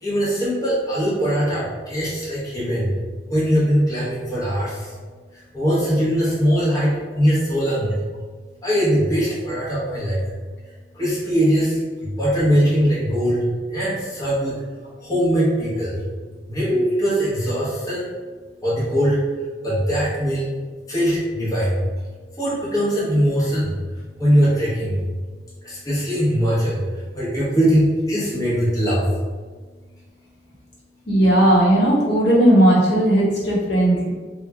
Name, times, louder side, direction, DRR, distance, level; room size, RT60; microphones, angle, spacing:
voice 1, 0.0-2.9 3.3-4.9 5.3-7.9 8.6-10.2 10.9-14.6 15.0-16.0 16.4-18.1 18.6-19.2 19.6-20.5 20.9-21.8 22.4-25.0 25.6-29.1, equal, 20° left, -8 dB, 0.9 m, -21 dB
voice 2, 31.1-34.1, right 1 dB, 75° left, -6 dB, 1.2 m, -16 dB
3.2 x 2.4 x 3.4 m, 1.4 s
head